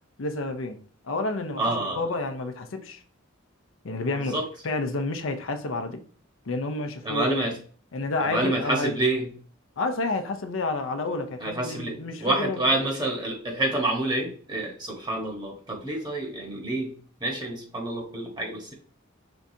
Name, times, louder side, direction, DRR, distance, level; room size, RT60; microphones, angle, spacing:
voice 1, 0.2-0.8 1.0-3.0 3.8-6.1 6.5-7.6 7.9-8.9 9.8-12.9, left 2 dB, 75° left, 0.6 m, -30 dB
voice 2, 1.6-2.0 4.1-4.4 7.0-7.6 8.2-9.3 11.4-16.9 17.2-18.7, right 2 dB, 20° right, 1.2 m, -28 dB
5.4 x 3.6 x 2.7 m
head